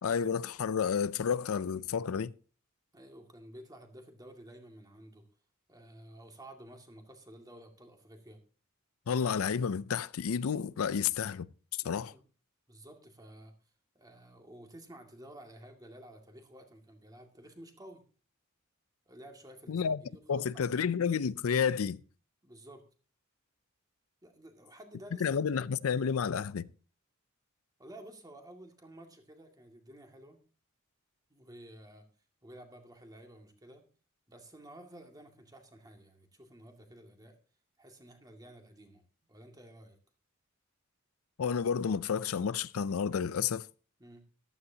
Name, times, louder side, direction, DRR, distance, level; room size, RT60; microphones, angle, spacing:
voice 1, 0.0-2.3 9.1-12.1 19.7-20.0 20.3-22.0 25.2-26.7 41.4-43.7, left 6 dB, 85° left, 0.5 m, -31 dB
voice 2, 2.9-5.2 5.7-8.4 11.8-12.2 12.7-13.5 13.9-18.0 19.1-20.7 22.4-22.8 24.2-25.3 25.6-25.7 27.8-30.4 31.3-32.1 32.4-33.8 34.3-37.4 37.8-39.0 39.3-40.0 44.0-44.2, right 1 dB, 20° right, 2.1 m, -52 dB
14.0 x 12.5 x 2.8 m
head